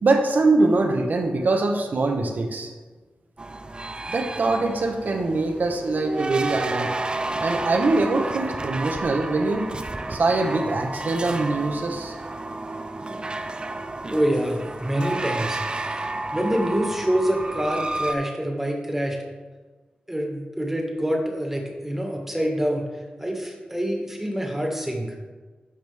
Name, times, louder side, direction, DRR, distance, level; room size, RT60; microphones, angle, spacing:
voice 1, 0.0-2.7 4.1-6.9 7.4-9.6 10.1-12.1, right 3 dB, 65° right, 4 dB, 1.1 m, -23 dB
sound 1, 3.4-18.1, right 2 dB, 30° right, 0.5 m, -31 dB
voice 2, 14.1-16.1 16.3-19.2 20.1-22.8 23.2-25.2, equal, 10° right, 1 dB, 1.8 m, -26 dB
12.5 x 5.2 x 3.5 m, 1.3 s
wide cardioid pair, 80°, 3 cm